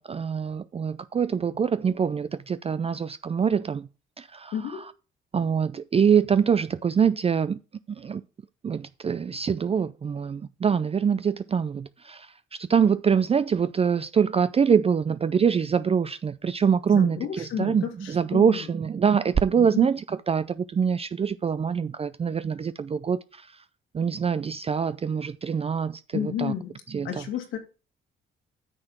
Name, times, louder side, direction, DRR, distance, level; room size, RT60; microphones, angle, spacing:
voice 1, 0.1-3.9 4.2-4.5 5.3-7.6 7.9-8.2 8.6-12.3 12.6-23.5 23.9-26.5 26.9-27.1, right 7 dB, 30° right, 0.4 m, -24 dB
voice 2, 4.5-4.8 16.9-18.7 19.6-19.9 26.1-26.7 27.0-27.6, left 9 dB, 85° left, 2.7 m, -32 dB
9.7 x 6.7 x 4.4 m
cardioid pair, 90°, 20 cm